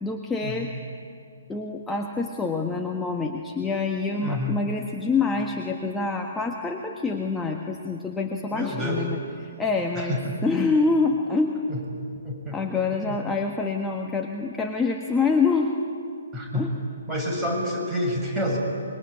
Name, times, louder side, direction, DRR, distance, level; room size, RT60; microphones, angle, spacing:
voice 1, 0.0-0.7 1.5-10.2 10.4-11.7 12.5-15.8 16.5-16.7, left 4 dB, 10° left, 1 dB, 1.6 m, -26 dB
voice 2, 4.2-4.6 8.5-9.0 10.0-10.3 11.7-11.8 12.2-12.6 12.9-13.2 16.3-16.6 17.1-18.6, left 1 dB, 15° right, -1 dB, 7.0 m, -28 dB
26.0 x 23.0 x 9.9 m, 2.4 s
figure-of-eight pair, 130°, 0 cm